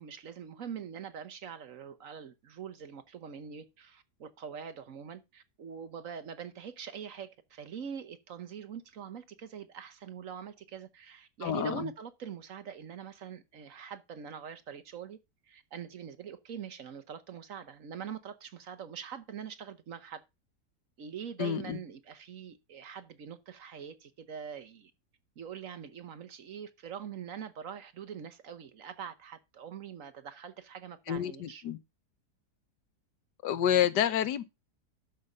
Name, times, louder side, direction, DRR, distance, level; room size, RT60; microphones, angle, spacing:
voice 1, 0.0-15.2 15.5-20.2 21.0-24.9 25.4-31.6, right 7 dB, 55° right, 1.2 m, -43 dB
voice 2, 11.4-11.9 21.4-21.8 31.1-31.8 33.4-34.4, left 10 dB, 85° left, 1.4 m, -29 dB
12.0 x 5.3 x 5.4 m
omnidirectional pair, 1.8 m